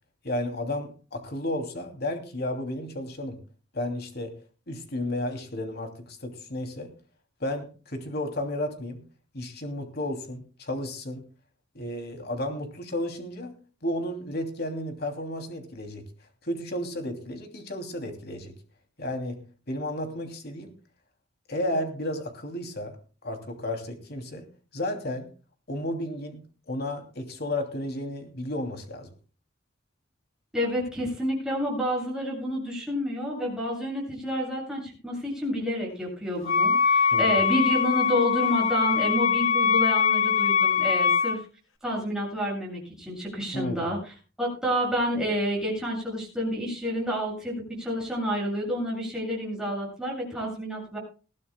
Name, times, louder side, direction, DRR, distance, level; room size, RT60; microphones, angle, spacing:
voice 1, 0.2-3.4 3.7-4.3 4.7-6.9 7.4-9.0 9.3-11.2 11.7-13.6 13.8-16.1 16.4-18.5 19.0-20.7 21.5-23.0 23.2-25.3 25.7-29.1 37.1-37.3 43.5-43.9, left 1 dB, 50° left, 5 dB, 2.8 m, -33 dB
voice 2, 30.5-41.4 41.8-44.0 44.4-51.0, equal, 5° right, -3 dB, 7.6 m, -29 dB
Wind instrument woodwind instrument, 36.5-41.4, left 6 dB, 90° left, 1.9 m, -23 dB
20.5 x 15.0 x 2.2 m, 0.35 s
head